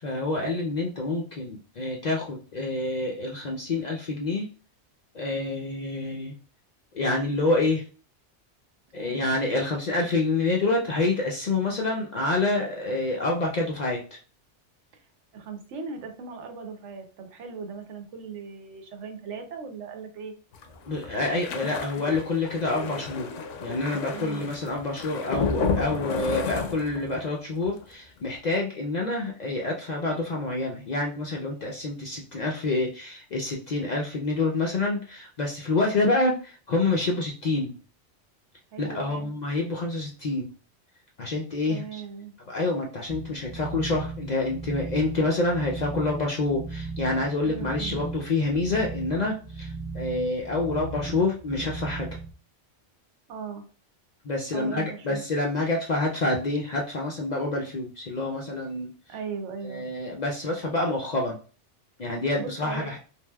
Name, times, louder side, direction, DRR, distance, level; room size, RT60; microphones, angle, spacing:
voice 1, 0.0-4.5 5.1-6.3 6.9-7.8 8.9-14.2 20.9-23.3 23.6-37.7 38.8-40.5 41.2-42.0 42.5-52.1 54.2-58.9 59.6-61.4 62.0-63.0, left 2 dB, 60° left, -1 dB, 0.4 m, -27 dB
voice 2, 15.3-20.3 24.1-24.5 38.7-39.3 41.6-42.3 47.4-48.1 53.3-53.6 54.5-55.2 59.1-59.9 62.4-62.9, right 5 dB, 85° right, 5 dB, 1.0 m, -38 dB
sound 1, 20.5-27.3 27.6-27.9 28.2-28.3, left 4 dB, 85° left, 0.9 m, -32 dB
sound 2, 43.1-52.3, right 4 dB, 60° right, 0.4 m, -37 dB
3.2 x 2.8 x 2.2 m, 0.38 s
omnidirectional pair, 1.2 m